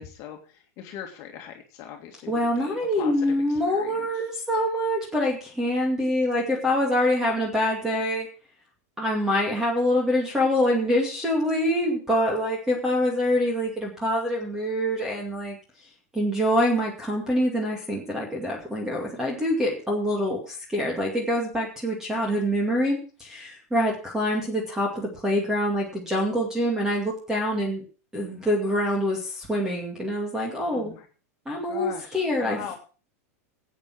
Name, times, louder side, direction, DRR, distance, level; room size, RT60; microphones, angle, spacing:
voice 1, 0.0-4.2 30.7-31.1 31.7-32.8, left 9 dB, 40° left, 2 dB, 2.1 m, -40 dB
voice 2, 2.3-8.3 9.0-15.6 16.1-27.8 28.1-30.9 31.5-32.8, equal, 5° right, -1 dB, 2.4 m, -25 dB
12.5 x 8.6 x 6.1 m, 0.38 s
supercardioid pair, 145°, 8 cm